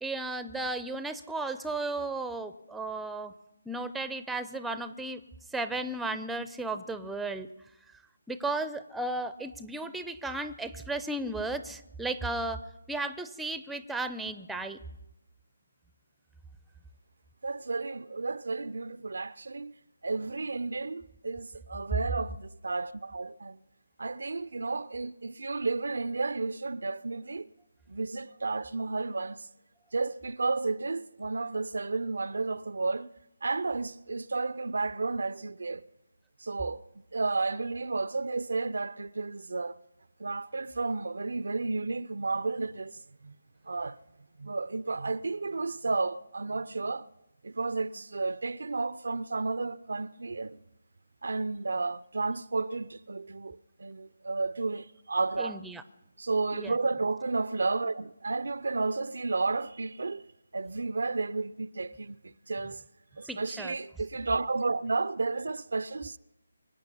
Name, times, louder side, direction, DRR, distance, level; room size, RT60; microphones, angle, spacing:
voice 1, 0.0-3.3 3.7-5.2 5.5-7.5 8.3-12.6 12.9-14.8 55.4-55.8 56.5-56.7 63.3-63.7, right 2 dB, 5° right, 0.6 m, -34 dB
voice 2, 17.4-19.7 20.0-23.6 24.0-27.5 27.9-29.5 29.9-33.1 33.4-35.8 36.4-36.8 37.1-39.8 40.2-43.3 43.6-44.0 44.4-47.1 47.4-50.6 51.2-55.6 56.2-60.3 60.5-62.8 63.2-66.2, right 3 dB, 65° right, 0.5 m, -32 dB
25.0 x 8.8 x 5.6 m
figure-of-eight pair, 150°, 0 cm